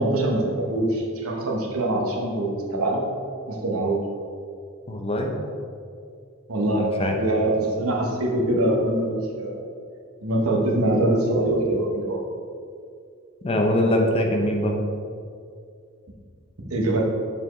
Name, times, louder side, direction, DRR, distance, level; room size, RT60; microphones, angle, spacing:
voice 1, 0.0-3.0 3.5-4.0 6.5-6.9 7.1-9.6 10.2-12.2 16.7-17.0, right 1 dB, 90° right, -1 dB, 1.0 m, -23 dB
voice 2, 4.9-5.3 6.7-7.2 13.4-14.7, left 1 dB, 30° left, 2 dB, 0.6 m, -23 dB
6.9 x 4.4 x 3.1 m, 2.3 s
head